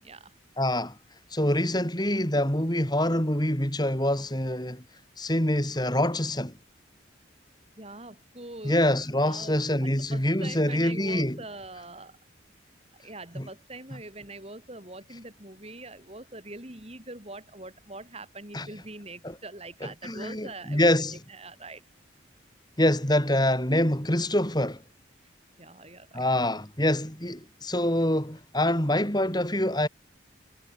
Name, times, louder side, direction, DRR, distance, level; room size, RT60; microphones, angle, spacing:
voice 1, 0.0-0.4 7.8-8.8 9.2-9.6 10.1-12.1 12.9-20.9 21.3-21.8 25.6-26.3, right 2 dB, 30° right, 7.4 m, -43 dB
voice 2, 0.6-1.0 1.3-4.8 5.2-6.5 8.6-11.4 13.4-13.5 18.5-18.7 19.2-19.4 19.8-21.2 22.8-24.8 26.1-29.9, left 1 dB, 20° left, 7.0 m, -25 dB
head